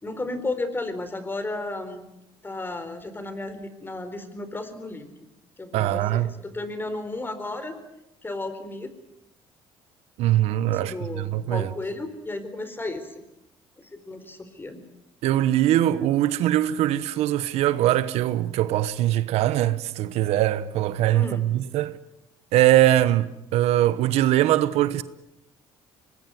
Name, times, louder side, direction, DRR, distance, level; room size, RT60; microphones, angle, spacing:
voice 1, 0.0-2.1 2.4-5.1 5.6-7.8 8.2-8.9 10.7-13.1 13.8-14.8 21.1-21.5, left 2 dB, 20° left, 4.2 m, -33 dB
voice 2, 5.7-6.3 10.2-11.7 15.2-22.0 22.5-25.0, right 13 dB, 80° right, 1.1 m, -22 dB
24.0 x 20.0 x 9.6 m
cardioid pair, 90°, 11 cm